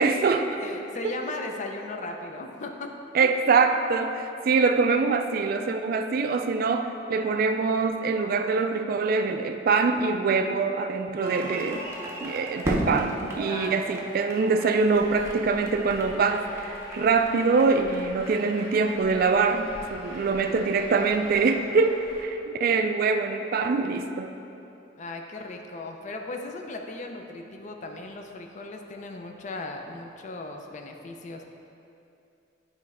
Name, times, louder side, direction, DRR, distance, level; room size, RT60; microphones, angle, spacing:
voice 1, 0.0-0.5 1.0-1.2 3.1-11.9 12.2-24.3, right 4 dB, 50° right, 7 dB, 0.3 m, -24 dB
voice 2, 0.6-2.9 13.5-14.0 25.0-31.5, left 2 dB, 40° left, 3 dB, 0.5 m, -37 dB
sound 1, 11.2-22.0, right 1 dB, 15° right, 0.7 m, -37 dB
Truck, 14.9-22.2, left 1 dB, 80° left, 1.4 m, -45 dB
9.0 x 3.1 x 4.8 m, 2.7 s
head